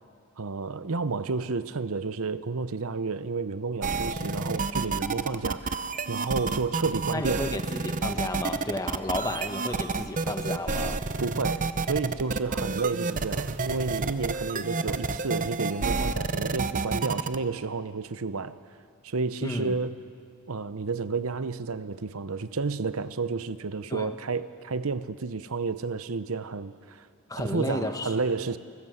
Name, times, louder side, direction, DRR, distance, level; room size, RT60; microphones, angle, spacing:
voice 1, 0.4-7.5 11.2-18.6 19.0-20.0 20.5-27.1 27.3-28.6, right 4 dB, 70° right, 0.8 m, -31 dB
sound 1, 3.8-17.4, right 4 dB, 35° right, 0.7 m, -29 dB
voice 2, 7.1-11.0 19.4-19.8 23.9-24.2 27.3-28.2, left 1 dB, 15° left, 1.3 m, -32 dB
29.0 x 19.5 x 7.9 m
head